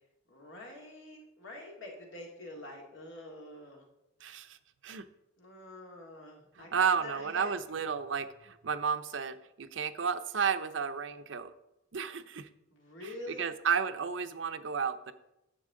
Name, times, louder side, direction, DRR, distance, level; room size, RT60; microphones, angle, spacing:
voice 1, 0.3-3.8 5.4-7.9 12.7-13.5, left 1 dB, 85° left, 0 dB, 2.1 m, -47 dB
voice 2, 4.2-4.6 4.8-5.1 6.6-11.5 11.9-12.5 13.0-15.1, right 6 dB, 80° right, 10 dB, 0.6 m, -32 dB
9.9 x 7.3 x 3.8 m, 0.91 s
head